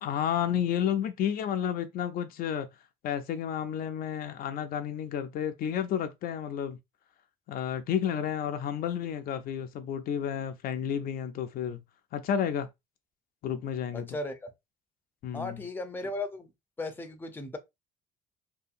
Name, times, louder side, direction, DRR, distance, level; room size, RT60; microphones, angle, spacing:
voice 1, 0.0-2.7 3.0-6.8 7.5-11.8 12.1-12.7 13.4-14.2 15.2-15.6, left 9 dB, 60° left, 0.5 m, -31 dB
voice 2, 13.9-14.5 15.3-16.5 16.8-17.6, left 2 dB, 10° left, 0.5 m, -36 dB
2.7 x 2.7 x 2.4 m
cardioid pair, 110°, 17 cm